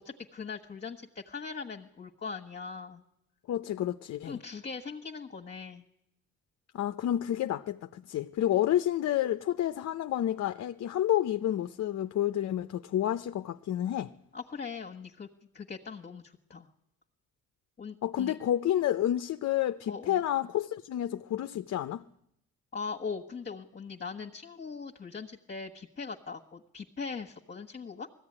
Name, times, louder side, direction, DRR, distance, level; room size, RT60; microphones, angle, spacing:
voice 1, 0.0-3.0 4.2-5.8 14.3-15.3 15.5-16.7 17.8-18.4 19.9-20.2 22.7-28.1, left 5 dB, 35° left, 1.5 m, -40 dB
voice 2, 3.5-4.4 6.7-14.1 18.0-22.0, left 12 dB, 60° left, 0.7 m, -30 dB
19.5 x 15.0 x 9.9 m
cardioid pair, 90°, 30 cm